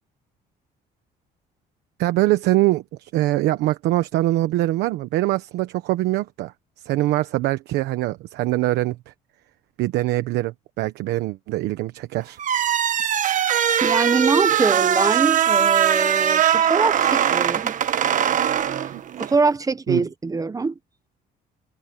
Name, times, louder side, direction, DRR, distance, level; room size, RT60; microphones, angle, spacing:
voice 1, 2.0-9.1 9.8-12.4 18.9-19.0 19.9-20.0, right 16 dB, 85° right, 1.1 m, -23 dB
sound 1, 12.4-19.4, right 9 dB, 50° right, 1.3 m, -21 dB
voice 2, 13.8-17.8 18.3-18.4 19.2-20.7, right 4 dB, 20° right, 1.1 m, -23 dB
cardioid pair, 110°, 17 cm